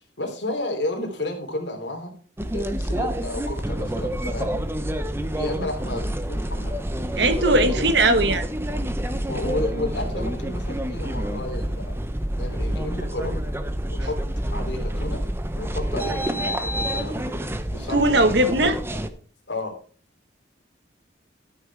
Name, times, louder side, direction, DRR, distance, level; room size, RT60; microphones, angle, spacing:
voice 1, 0.2-2.1 2.5-4.6 5.3-6.8 7.2-7.8 9.3-12.0 12.3-13.4 13.9-14.2 14.5-15.2 15.6-17.3 17.7-18.4 19.5-19.7, left 2 dB, 65° left, 3.2 m, -32 dB
sound 1, 2.4-19.1, equal, 15° right, 0.8 m, -28 dB
voice 2, 7.2-8.4 17.9-18.8, right 2 dB, 60° right, 1.2 m, -19 dB
13.0 x 6.7 x 4.7 m
head